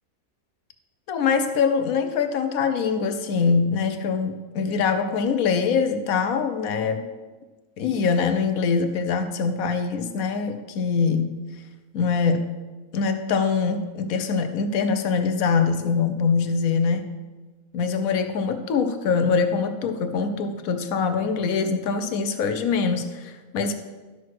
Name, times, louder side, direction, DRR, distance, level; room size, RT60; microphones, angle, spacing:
voice 1, 1.1-7.1 7.8-11.4 11.9-12.5 12.9-17.1 17.7-23.7, left 5 dB, 80° left, 9 dB, 1.2 m, -23 dB
12.5 x 6.0 x 4.7 m, 1.3 s
omnidirectional pair, 1.5 m